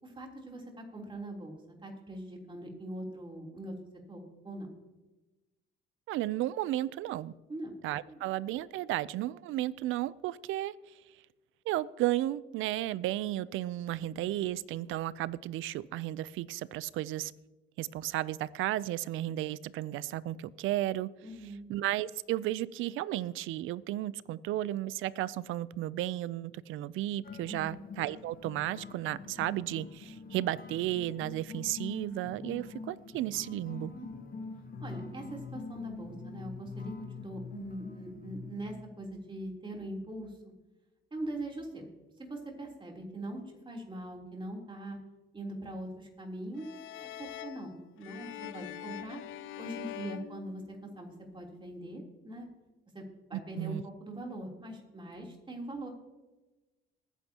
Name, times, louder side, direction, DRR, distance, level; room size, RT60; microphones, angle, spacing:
voice 1, 0.0-3.7 4.1-4.7 7.5-7.7 8.1-8.2 21.2-21.7 27.5-27.8 33.9-34.3 34.8-40.3 41.1-41.8 42.2-45.0 45.3-49.2 49.6-52.5 52.9-53.0 53.3-55.9, right 1 dB, 25° right, 0 dB, 3.4 m, -42 dB
voice 2, 6.1-7.3 7.8-10.7 11.7-17.3 17.8-21.1 21.7-33.9 53.3-53.8, right 14 dB, 85° right, 19 dB, 0.5 m, -33 dB
sound 1, 27.2-38.6, left 4 dB, 45° left, 1.6 m, -45 dB
sound 2, 46.6-51.2, left 12 dB, 80° left, 0.6 m, -44 dB
20.0 x 9.9 x 2.9 m, 1.1 s
cardioid pair, 90°, 20 cm